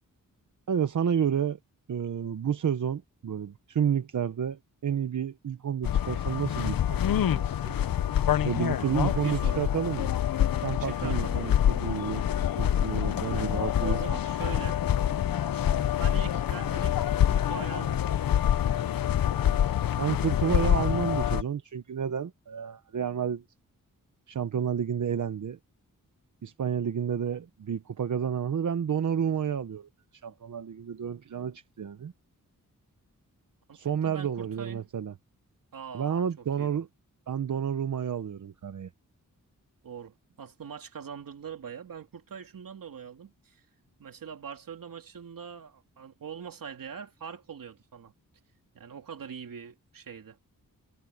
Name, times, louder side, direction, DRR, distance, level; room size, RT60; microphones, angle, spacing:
voice 1, 0.7-1.6 1.9-7.7 8.4-10.1 10.6-12.2 12.6-14.0 20.0-23.4 24.3-25.6 26.4-29.9 30.2-32.1 33.7-35.1 35.9-36.9 37.3-38.9, right 8 dB, 60° right, 1.0 m, -30 dB
sound 1, 5.8-21.4, left 10 dB, 90° left, 0.8 m, -26 dB
voice 2, 8.8-9.7 10.8-11.6 13.3-14.8 16.0-18.0 33.7-34.9 35.7-36.9 39.8-43.7 44.0-48.1 48.7-50.4, right 7 dB, 80° right, 3.2 m, -42 dB
wide cardioid pair, 135°, 33 cm